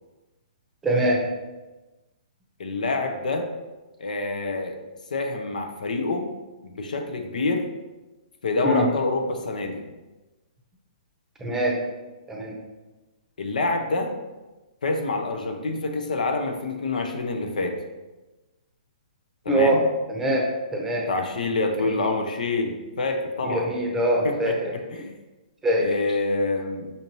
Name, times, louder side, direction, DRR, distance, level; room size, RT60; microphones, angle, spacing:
voice 1, 0.8-1.2 8.6-8.8 11.4-11.8 12.3-12.5 19.5-19.8 20.1-20.5 20.7-21.1 21.8-22.0 23.4-24.7 25.6-25.8, right 1 dB, 10° right, -1 dB, 0.7 m, -23 dB
voice 2, 2.6-3.5 4.0-4.8 5.1-6.3 6.6-7.6 8.4-9.8 13.4-14.1 14.8-17.8 19.4-19.8 21.1-23.7 24.2-24.6 24.9-25.1 25.8-26.9, left 3 dB, 80° left, 5 dB, 0.6 m, -26 dB
5.5 x 2.6 x 3.0 m, 1.1 s
hypercardioid pair, 140°, 4 cm